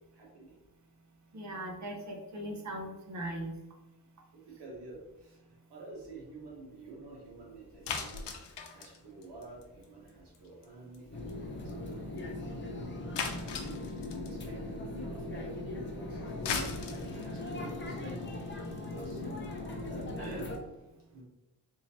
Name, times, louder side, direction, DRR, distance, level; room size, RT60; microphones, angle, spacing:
voice 1, 0.1-0.5 4.3-8.3 8.7-16.8 17.1-18.5 18.9-21.2, right 2 dB, 75° right, -3 dB, 1.4 m, -49 dB
voice 2, 1.3-3.5 19.2-19.3, right 1 dB, 45° right, 1 dB, 0.8 m, -39 dB
sound 1, 7.8-10.1 10.3-10.6 10.9-11.0 11.3-11.4 11.7-11.8 12.2-12.3 13.2-14.4 16.2-20.6, left 5 dB, 85° left, 0.6 m, -38 dB
sound 2, 11.1-20.6, left 2 dB, 30° left, 0.5 m, -39 dB
3.7 x 2.8 x 3.0 m, 1.0 s
wide cardioid pair, 150°, 41 cm